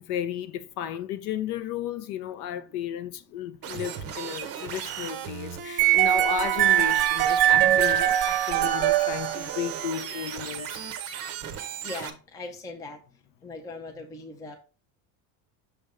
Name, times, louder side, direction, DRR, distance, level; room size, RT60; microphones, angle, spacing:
voice 1, 0.0-10.8, left 10 dB, 55° left, 0.7 m, -34 dB
sound 1, 3.6-12.1, right 8 dB, 30° right, 0.7 m, -36 dB
sound 2, 5.8-9.9, right 13 dB, 90° right, 0.9 m, -22 dB
voice 2, 11.8-13.0 13.4-14.6, left 3 dB, 10° left, 0.5 m, -39 dB
6.5 x 3.4 x 4.9 m
cardioid pair, 170°, 47 cm